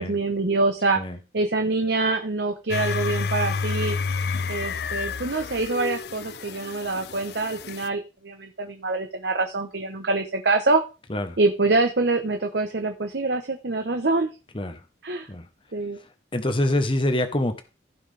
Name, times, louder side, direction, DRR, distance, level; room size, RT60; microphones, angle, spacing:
voice 1, 0.0-1.0 1.3-4.0 4.5-10.8 11.4-14.3 15.0-15.3 15.7-16.0, right 3 dB, 65° right, 5 dB, 0.9 m, -25 dB
sound 1, 2.7-7.9, left 5 dB, 55° left, 0.4 m, -29 dB
voice 2, 16.3-17.6, left 1 dB, 25° left, 8 dB, 0.9 m, -25 dB
15.0 x 6.0 x 3.4 m, 0.31 s
head